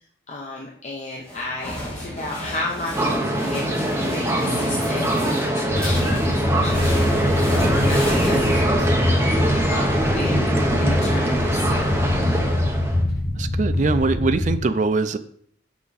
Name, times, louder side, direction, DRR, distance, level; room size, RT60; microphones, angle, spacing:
voice 1, 0.3-9.4 9.7-10.5 10.8-11.9, left 2 dB, 35° left, -2 dB, 0.8 m, -33 dB
sound 1, 1.2-9.2, equal, 5° left, 2.2 m, -31 dB
sound 2, 2.9-13.0, right 1 dB, 15° right, 0.9 m, -23 dB
sound 3, 5.7-14.6, left 1 dB, 50° left, 1.4 m, -24 dB
voice 2, 13.4-15.2, right 3 dB, 40° right, 10 dB, 0.4 m, -22 dB
5.9 x 5.9 x 4.0 m, 0.64 s
head